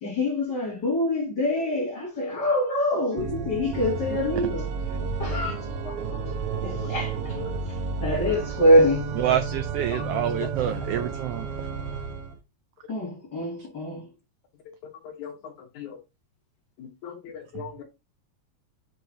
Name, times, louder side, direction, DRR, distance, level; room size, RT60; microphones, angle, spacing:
voice 1, 0.0-4.7 5.2-5.5 6.6-7.4 8.0-9.2 12.9-14.1, equal, 35° left, 2.9 m, -24 dB
Organ, 3.1-12.4, right 4 dB, 65° right, 1.6 m, -32 dB
voice 2, 5.0-5.4 6.5-6.9 7.4-7.5 9.9-10.2 15.0-15.3 15.8-16.0 16.8-17.8, left 7 dB, 75° left, 2.8 m, -39 dB
voice 3, 9.2-11.5 17.5-17.6, right 11 dB, 90° right, 1.3 m, -27 dB
8.1 x 4.7 x 4.1 m
omnidirectional pair, 3.4 m